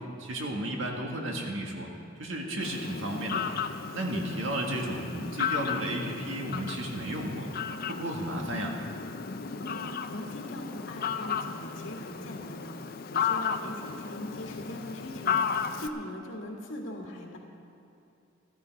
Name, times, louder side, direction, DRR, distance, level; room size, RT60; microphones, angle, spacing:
voice 1, 0.0-1.9 2.2-3.5 3.9-7.5 7.9-8.8, right 1 dB, 75° right, 1 dB, 1.8 m, -33 dB
Fowl, 2.6-15.9, left 6 dB, 45° left, 0.5 m, -34 dB
voice 2, 10.1-17.4, left 1 dB, 70° left, 0 dB, 2.0 m, -41 dB
14.0 x 13.5 x 4.7 m, 2.6 s
head